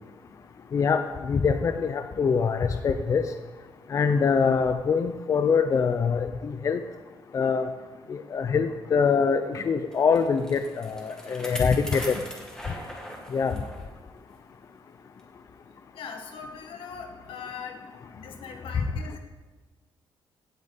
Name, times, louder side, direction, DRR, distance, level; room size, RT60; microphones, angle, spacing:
voice 1, 0.7-3.2 3.9-6.8 7.3-7.7 8.1-12.1 13.3-13.6, left 5 dB, 35° left, 8 dB, 0.5 m, -24 dB
Bicycle, 9.9-13.8 14.3-14.4 15.2-15.3, left 1 dB, 5° left, 1.9 m, -40 dB
voice 2, 15.9-17.9 18.1-19.2, left 6 dB, 80° left, 4 dB, 1.7 m, -40 dB
17.0 x 8.7 x 4.1 m, 1.3 s
cardioid pair, 155°, 9 cm